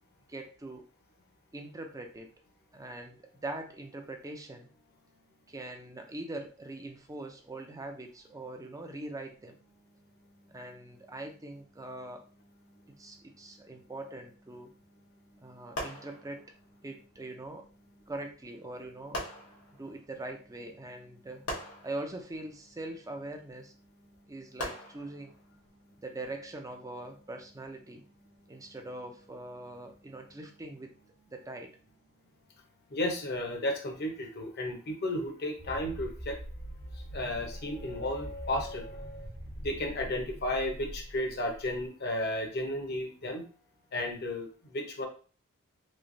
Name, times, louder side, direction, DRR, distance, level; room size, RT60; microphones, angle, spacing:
voice 1, 0.3-0.8 1.5-2.3 2.7-4.7 5.5-9.6 10.5-12.2 13.0-14.7 15.4-16.4 16.8-17.6 18.1-19.2 19.8-21.4 21.8-23.7 24.3-25.3 26.0-28.0 28.5-30.9 31.3-31.7, right 2 dB, 15° right, 4 dB, 0.5 m, -42 dB
sound 1, 15.7-16.8 18.1-18.2 19.1-20.1 21.5-22.8 24.6-25.6 26.3-26.6, equal, 90° left, 1.0 m, -41 dB
voice 2, 32.9-36.4 37.1-39.3 39.6-43.4 43.9-44.5 44.7-45.1, left 1 dB, 50° left, 3 dB, 0.8 m, -33 dB
sound 2, 35.6-41.8, equal, 40° right, 1.1 m, -43 dB
3.2 x 2.8 x 2.6 m, 0.38 s
head